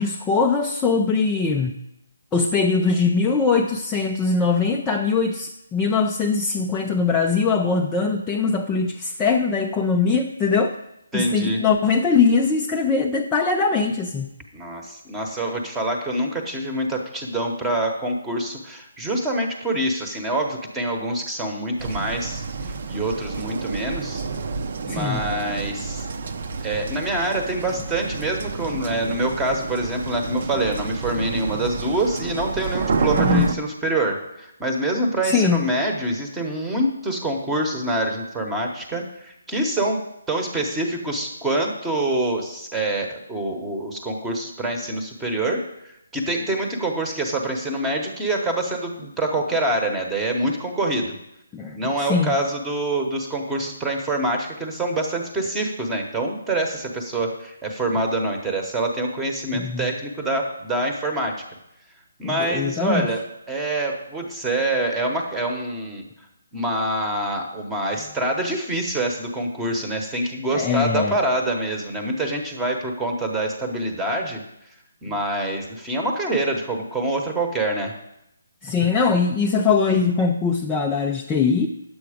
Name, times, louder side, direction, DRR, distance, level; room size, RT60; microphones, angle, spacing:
voice 1, 0.0-1.7 2.3-10.8 11.1-14.3 24.9-25.2 33.2-33.5 35.2-35.6 51.5-52.3 59.5-59.9 62.2-63.1 70.5-71.1 78.6-81.7, left 5 dB, 10° left, 0 dB, 0.4 m, -21 dB
voice 2, 11.1-11.6 14.5-22.4 22.9-24.2 24.9-26.1 26.6-40.0 40.3-51.1 51.7-61.3 62.2-63.2 63.5-66.0 66.5-74.4 75.0-77.9, right 1 dB, 5° right, 3 dB, 1.0 m, -25 dB
sound 1, 21.8-33.6, right 4 dB, 45° right, 0.7 m, -29 dB
10.5 x 7.8 x 5.0 m, 0.83 s
hypercardioid pair, 170°, 0 cm